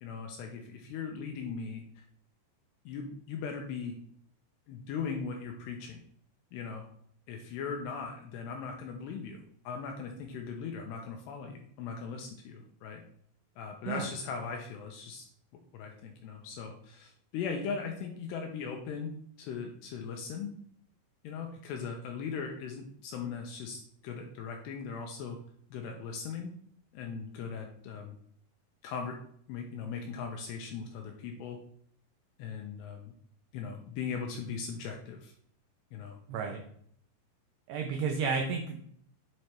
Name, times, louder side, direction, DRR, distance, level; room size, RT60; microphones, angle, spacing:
voice 1, 0.0-1.8 2.9-4.0 4.7-6.0 6.5-6.8 7.3-13.0 13.6-15.3 15.7-19.1 19.4-20.6 21.2-25.4 25.7-26.5 26.9-28.2 28.8-29.2 29.5-31.6 32.4-33.1 33.5-35.3 35.9-36.2, left 5 dB, 85° left, 3 dB, 2.5 m, -39 dB
voice 2, 36.3-36.6 37.7-38.8, right 5 dB, 85° right, 4 dB, 2.3 m, -32 dB
8.1 x 3.2 x 4.3 m, 0.64 s
omnidirectional pair, 5.4 m